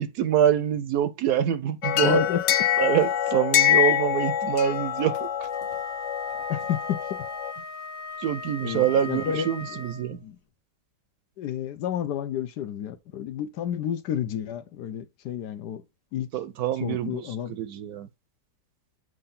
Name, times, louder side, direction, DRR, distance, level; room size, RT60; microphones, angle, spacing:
voice 1, 0.0-2.2 2.8-5.5 8.2-10.2 16.3-18.1, right 10 dB, 70° right, 1.0 m, -25 dB
sound 1, 1.8-7.5, left 11 dB, 90° left, 0.6 m, -25 dB
voice 2, 2.0-2.4 6.5-7.2 8.6-10.4 11.4-15.8 16.1-16.3 16.8-17.6, left 9 dB, 75° left, 1.2 m, -30 dB
Wind instrument woodwind instrument, 5.5-10.2, left 3 dB, 40° left, 1.2 m, -38 dB
7.6 x 2.7 x 5.6 m
omnidirectional pair, 1.9 m